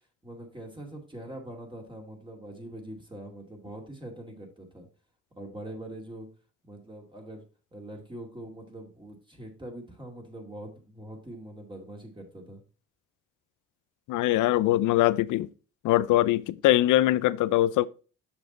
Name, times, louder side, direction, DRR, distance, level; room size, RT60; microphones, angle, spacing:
voice 1, 0.2-4.9 5.4-6.3 6.6-7.4 7.7-12.6, right 1 dB, 15° right, 2.3 m, -43 dB
voice 2, 14.1-15.5 15.8-17.9, left 15 dB, 85° left, 0.5 m, -22 dB
7.1 x 6.2 x 3.9 m
cardioid pair, 90°, 30 cm